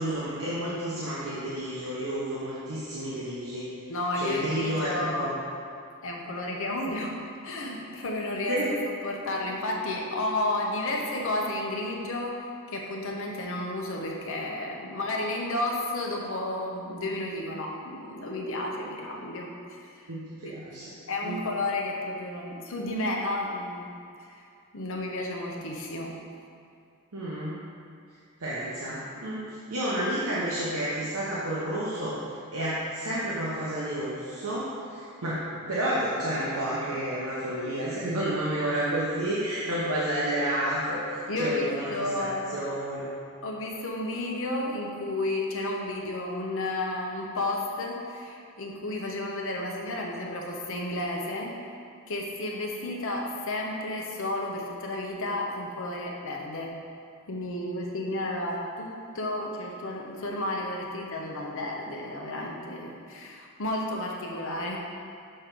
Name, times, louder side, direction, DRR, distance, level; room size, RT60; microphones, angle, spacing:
voice 1, 0.0-3.9 4.2-5.3 8.5-8.7 20.0-20.9 21.2-21.4 27.1-27.6 28.4-32.2 32.5-42.3 42.5-43.1, right 1 dB, 80° right, -8 dB, 1.0 m, -30 dB
voice 2, 3.9-5.4 6.0-8.8 9.0-12.4 12.7-20.0 20.7-23.9 24.2-24.4 24.7-26.1 41.3-42.5 43.4-51.6 52.1-56.7 57.3-64.8, left 1 dB, 65° left, -1 dB, 0.9 m, -32 dB
6.5 x 3.3 x 5.9 m, 2.4 s
head